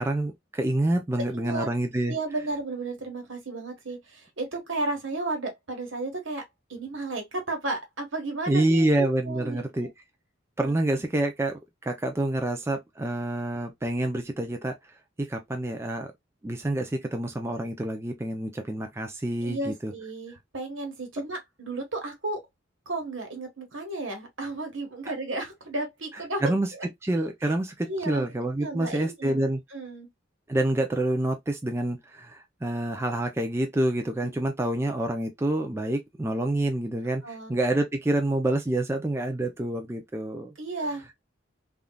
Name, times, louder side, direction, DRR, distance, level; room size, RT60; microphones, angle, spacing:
voice 1, 0.0-2.2 8.5-9.9 10.6-11.5 11.8-14.7 15.2-16.1 16.4-19.9 26.4-26.7 27.0-29.6 30.5-40.5, right 1 dB, 15° right, 0.4 m, -27 dB
voice 2, 1.3-1.7 2.1-6.4 6.7-9.9 10.6-10.8 19.4-22.4 22.9-26.4 26.7-26.9 27.8-28.2 28.6-29.4 29.7-30.1 34.2-34.3 37.2-37.5 40.6-41.2, right 2 dB, 70° right, 1.3 m, -33 dB
3.5 x 2.4 x 2.2 m
head